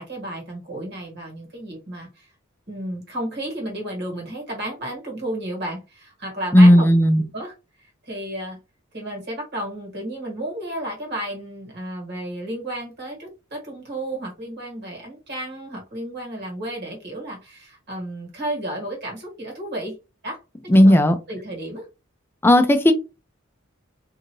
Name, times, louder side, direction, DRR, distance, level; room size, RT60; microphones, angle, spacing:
voice 1, 0.0-2.3 2.7-6.9 7.3-7.5 8.1-8.6 8.9-20.0 20.2-21.8, right 1 dB, 55° right, 1.6 m, -32 dB
voice 2, 6.5-7.2 20.7-21.1 22.4-22.9, left 1 dB, 10° left, 0.4 m, -13 dB
2.7 x 2.5 x 3.0 m
head